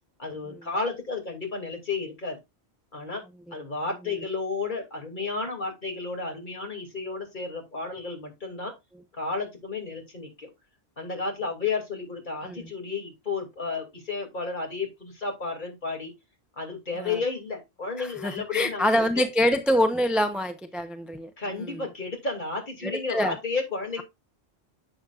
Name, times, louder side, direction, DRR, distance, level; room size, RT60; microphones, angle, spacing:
voice 1, 0.2-2.4 2.9-3.2 3.5-8.7 9.1-10.5 11.0-16.1 16.6-18.9 21.4-24.0, left 4 dB, 45° left, 2.8 m, -32 dB
voice 2, 18.0-21.3 21.7-21.8 22.8-23.3, equal, ahead, 0.7 m, -25 dB
10.0 x 7.2 x 2.4 m
omnidirectional pair, 1.2 m